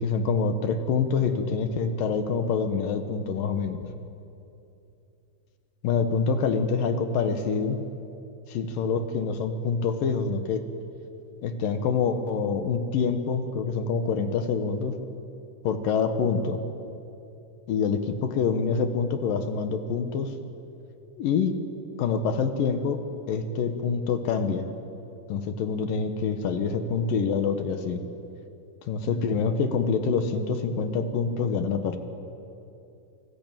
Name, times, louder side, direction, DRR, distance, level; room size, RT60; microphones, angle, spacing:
voice 1, 0.0-3.9 5.8-7.8 8.5-10.7 11.4-15.0 15.6-16.6 17.7-20.3 21.2-21.6 22.0-24.7 25.3-28.0 28.9-32.0, left 5 dB, 65° left, 7 dB, 2.4 m, -26 dB
28.5 x 20.0 x 9.0 m, 2.8 s
omnidirectional pair, 5.5 m